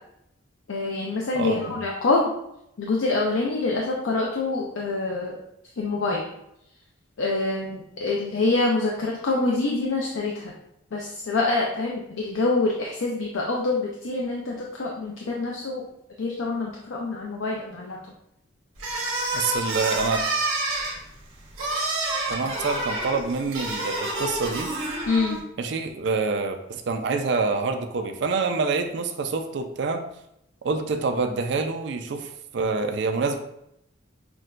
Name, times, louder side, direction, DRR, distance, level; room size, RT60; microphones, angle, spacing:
voice 1, 0.7-2.3 2.8-5.4 5.8-6.2 7.2-10.5 10.9-15.8 16.2-18.0 25.1-25.4, left 3 dB, 80° left, -2 dB, 0.5 m, -26 dB
voice 2, 1.3-1.8 19.3-20.3 22.3-24.7 25.6-30.0 30.6-33.4, right 4 dB, 55° right, 6 dB, 0.3 m, -26 dB
sound 1, 18.8-25.4, right 2 dB, 85° right, 1.0 m, -28 dB
5.9 x 2.1 x 2.4 m, 0.80 s
head